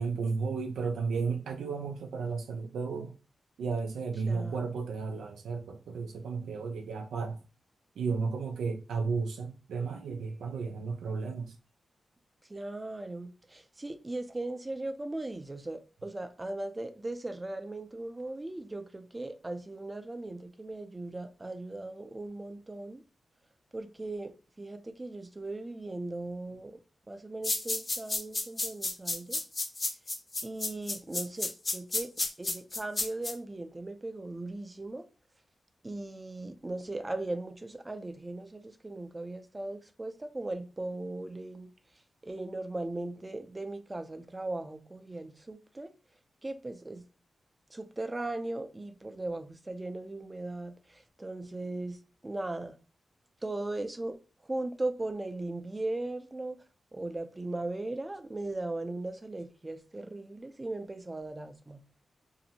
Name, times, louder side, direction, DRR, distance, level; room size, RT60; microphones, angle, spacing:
voice 1, 0.0-3.1 3.6-7.4 8.0-11.5, right 4 dB, 90° right, 0.4 m, -33 dB
voice 2, 4.2-4.8 12.5-23.0 23.7-26.8 27.1-29.4 30.4-32.1 32.4-35.1 35.8-41.7 42.2-45.9 46.4-47.0 47.7-52.8 53.4-54.2 54.5-56.6 56.9-61.8, right 2 dB, 25° right, 0.5 m, -38 dB
sound 1, 27.4-33.3, left 2 dB, 40° left, 0.8 m, -31 dB
2.7 x 2.0 x 2.8 m
cardioid pair, 50°, 0 cm